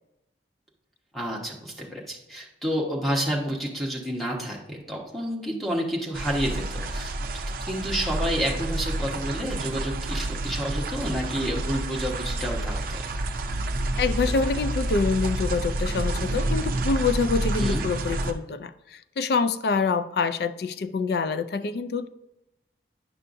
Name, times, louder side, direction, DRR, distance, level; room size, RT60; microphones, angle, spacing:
voice 1, 1.1-7.1 7.7-13.0 17.6-17.8, equal, ahead, -3 dB, 1.1 m, -29 dB
sound 1, 6.1-18.3, right 1 dB, 50° right, 0.5 m, -29 dB
voice 2, 14.0-18.7 19.2-22.1, left 4 dB, 60° left, 11 dB, 0.3 m, -26 dB
9.8 x 5.5 x 2.6 m, 0.89 s
head